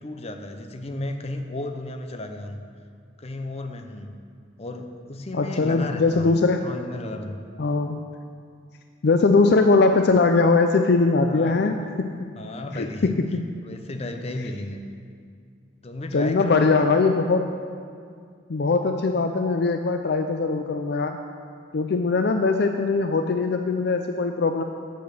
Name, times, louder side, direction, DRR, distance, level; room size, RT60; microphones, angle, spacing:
voice 1, 0.0-2.6 3.2-4.1 4.6-7.4 11.3-11.7 12.4-13.2 13.6-14.8 15.8-16.9, left 1 dB, 30° left, 5 dB, 0.8 m, -34 dB
voice 2, 5.3-6.6 7.6-8.0 9.0-12.3 12.8-13.4 16.1-17.5 18.5-21.2 21.7-24.6, left 3 dB, 55° left, 6 dB, 0.5 m, -21 dB
8.9 x 7.7 x 6.6 m, 2.2 s
head